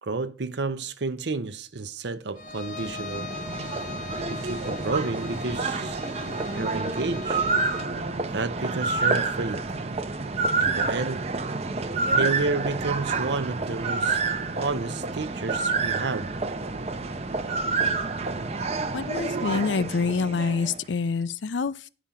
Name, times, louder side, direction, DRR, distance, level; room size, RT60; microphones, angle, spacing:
voice 1, 0.0-3.3 4.3-6.0 6.5-7.4 8.3-9.7 10.6-11.3 12.1-14.2 14.5-16.3, right 3 dB, 70° right, 0.7 m, -31 dB
Bowed string instrument, 2.4-8.0, left 5 dB, 45° left, 0.7 m, -40 dB
sound 1, 2.4-20.8, right 3 dB, 35° right, 0.7 m, -28 dB
voice 2, 18.9-21.9, left 4 dB, 80° left, 0.5 m, -26 dB
10.5 x 5.1 x 5.7 m
head